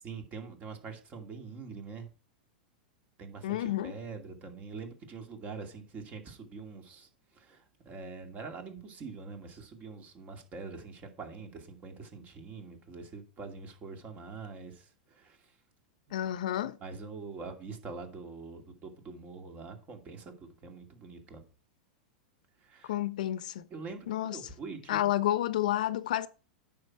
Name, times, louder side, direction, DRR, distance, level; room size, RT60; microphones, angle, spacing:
voice 1, 0.0-2.1 3.2-15.6 16.8-21.4 22.6-23.0 23.7-25.1, right 4 dB, 35° right, 2.4 m, -44 dB
voice 2, 3.4-3.9 16.1-16.8 22.9-23.6 24.1-24.4 24.9-26.3, left 13 dB, 70° left, 0.8 m, -30 dB
9.4 x 6.0 x 4.8 m
hypercardioid pair, 110°, 4 cm